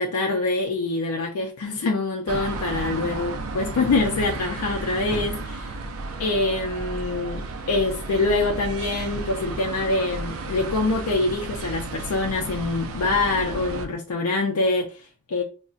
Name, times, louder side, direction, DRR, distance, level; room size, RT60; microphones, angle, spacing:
voice 1, 0.0-5.8 6.2-7.4 7.7-15.4, left 3 dB, 85° left, 1 dB, 0.4 m, -25 dB
sound 1, 2.3-13.9, right 3 dB, 70° right, 0.4 m, -33 dB
sound 2, 3.2-9.3, equal, 10° left, 0.4 m, -42 dB
3.8 x 2.1 x 2.4 m, 0.35 s
head